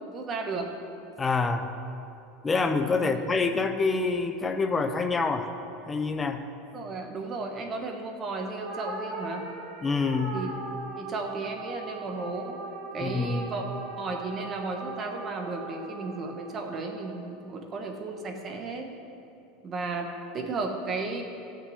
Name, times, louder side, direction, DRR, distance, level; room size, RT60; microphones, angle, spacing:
voice 1, 0.1-0.7 3.0-3.1 6.7-9.5 10.3-10.5 11.0-12.6 12.9-13.6 14.0-18.9 19.6-21.2, right 3 dB, 25° right, 3 dB, 1.1 m, -34 dB
voice 2, 1.2-1.7 2.4-5.5 5.9-6.4 9.8-10.5 13.0-13.5, left 4 dB, 10° left, 8 dB, 0.6 m, -26 dB
sound 1, 8.6-17.2, right 3 dB, 70° right, 1.8 m, -39 dB
13.0 x 6.4 x 7.9 m, 2.7 s
supercardioid pair, 170°, 0 cm